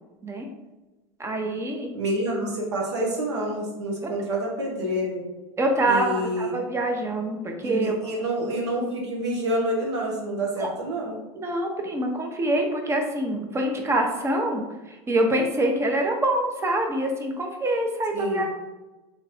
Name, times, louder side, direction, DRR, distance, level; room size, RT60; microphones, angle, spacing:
voice 1, 1.2-1.9 4.0-4.1 5.6-8.3 10.6-10.7 11.3-18.5, right 1 dB, 20° right, 2 dB, 0.7 m, -25 dB
voice 2, 1.9-5.3 5.8-6.5 7.6-11.2 18.1-18.5, right 1 dB, 85° right, -2 dB, 1.1 m, -28 dB
3.2 x 2.5 x 4.1 m, 1.1 s
hypercardioid pair, 95°, 14 cm